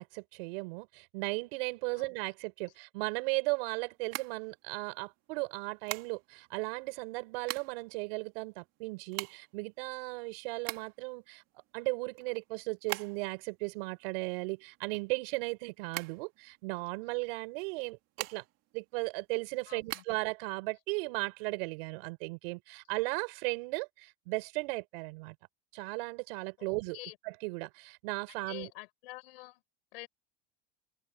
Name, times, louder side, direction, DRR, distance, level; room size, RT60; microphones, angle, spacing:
voice 1, 0.0-18.4 18.7-25.3 25.7-27.0 27.2-28.7, right 28 dB, 75° right, 6.0 m, -36 dB
sound 1, 4.0-5.0 5.9-6.5 7.1-7.9 8.2-8.3 8.5-11.1 11.5-13.4 13.7-15.5 15.9-16.9 17.7-18.7 19.1-20.0, right 19 dB, 55° right, 1.9 m, -41 dB
voice 2, 19.7-20.0 26.6-26.7 26.9-27.2 28.3-29.6 29.9-30.1, left 19 dB, 80° left, 6.4 m, -47 dB
open air
supercardioid pair, 100°, 30 cm